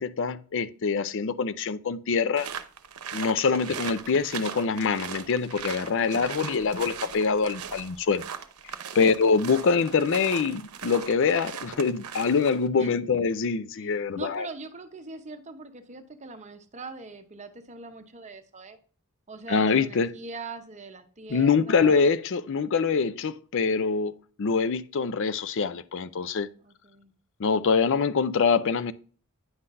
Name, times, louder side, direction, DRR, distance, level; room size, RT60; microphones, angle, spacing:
voice 1, 0.0-2.5 3.1-8.2 8.9-14.5 19.5-20.1 21.3-26.5 27.4-28.9, left 5 dB, 60° left, 0.5 m, -24 dB
sound 1, 2.4-12.7, right 7 dB, 80° right, 0.8 m, -39 dB
voice 2, 14.2-18.8 19.3-22.1 26.6-27.1, right 3 dB, 30° right, 0.8 m, -42 dB
9.5 x 5.7 x 2.6 m
head